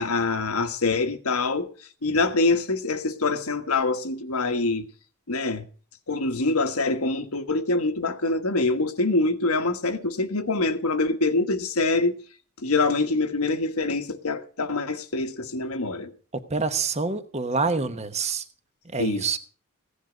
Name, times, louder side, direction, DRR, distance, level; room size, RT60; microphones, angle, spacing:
voice 1, 0.0-1.7 2.0-4.8 5.3-5.6 6.1-12.2 12.6-16.1 19.0-19.3, left 3 dB, 90° left, 1.3 m, -25 dB
voice 2, 16.5-18.4 18.9-19.4, right 4 dB, 30° right, 1.1 m, -26 dB
16.0 x 10.0 x 5.1 m
head